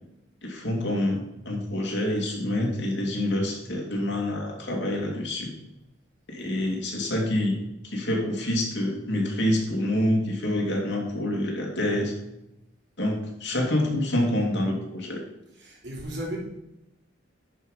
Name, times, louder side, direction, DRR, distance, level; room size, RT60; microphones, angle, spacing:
voice 1, 0.4-5.5 6.3-7.6 7.8-12.1 13.0-15.2, left 1 dB, 70° left, -1 dB, 2.6 m, -27 dB
voice 2, 15.5-16.4, right 1 dB, 70° right, -4 dB, 3.6 m, -35 dB
10.5 x 4.9 x 5.5 m, 0.89 s
head